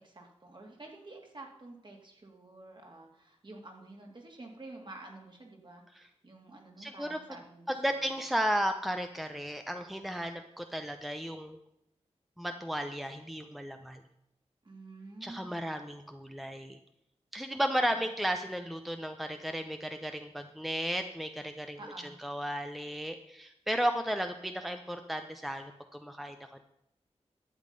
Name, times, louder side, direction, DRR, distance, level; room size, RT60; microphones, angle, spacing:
voice 1, 0.0-8.2 14.6-15.6 21.8-22.1, right 2 dB, 40° right, 1 dB, 2.5 m, -49 dB
voice 2, 6.8-7.2 7.7-11.6 12.4-14.0 15.2-16.8 17.3-21.8 22.2-26.6, equal, ahead, 6 dB, 0.7 m, -34 dB
11.5 x 7.5 x 5.3 m, 0.80 s
wide cardioid pair, 70°, 12 cm